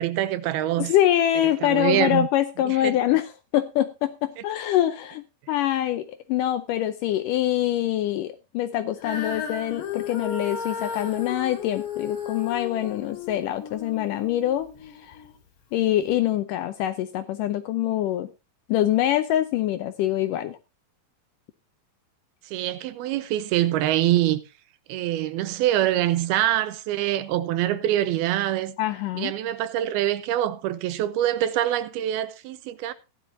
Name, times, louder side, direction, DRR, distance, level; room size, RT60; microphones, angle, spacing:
voice 1, 0.0-0.9 1.6-2.3 2.7-3.0 22.5-24.4 24.9-28.8 29.2-32.9, right 13 dB, 85° right, 2.7 m, -25 dB
voice 2, 0.8-15.2 15.7-18.3 18.7-20.6 28.8-29.3, left 12 dB, 80° left, 2.0 m, -25 dB
Female singing, 9.0-15.3 16.0-16.1, left 7 dB, 60° left, 3.7 m, -34 dB
16.0 x 11.0 x 2.6 m
omnidirectional pair, 4.4 m